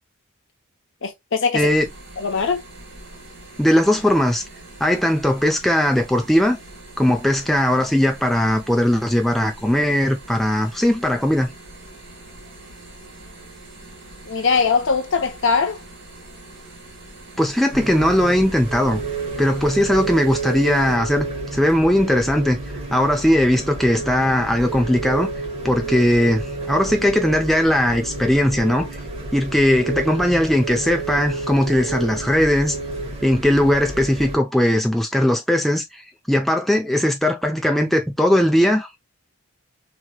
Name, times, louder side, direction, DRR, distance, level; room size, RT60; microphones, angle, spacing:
voice 1, 1.0-1.7 2.2-2.6 14.3-15.8, left 5 dB, 60° left, 0.7 m, -21 dB
voice 2, 1.5-1.9 3.6-4.4 4.8-6.6 7.0-11.5 17.4-19.0 19.4-22.6 22.9-25.3 25.6-28.9 29.3-32.8 33.2-36.0 36.3-39.0, left 1 dB, ahead, 0.5 m, -19 dB
sound 1, 1.6-21.0, right 2 dB, 50° right, 1.5 m, -43 dB
sound 2, 17.7-34.4, right 3 dB, 30° right, 1.1 m, -30 dB
3.1 x 2.9 x 2.2 m
head